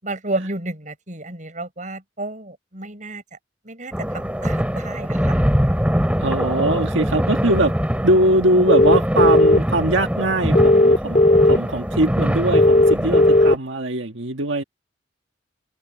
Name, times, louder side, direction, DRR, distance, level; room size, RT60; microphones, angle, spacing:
voice 1, 0.0-3.2 3.6-5.5, right 2 dB, 40° right, 7.9 m, -31 dB
sound 1, 3.9-13.6, equal, 5° right, 7.8 m, -23 dB
voice 2, 6.2-7.7 8.0-14.6, right 1 dB, 90° right, 1.6 m, -21 dB
sound 2, 8.7-9.6 10.5-11.6 12.5-13.5, left 1 dB, 45° left, 2.1 m, -14 dB
head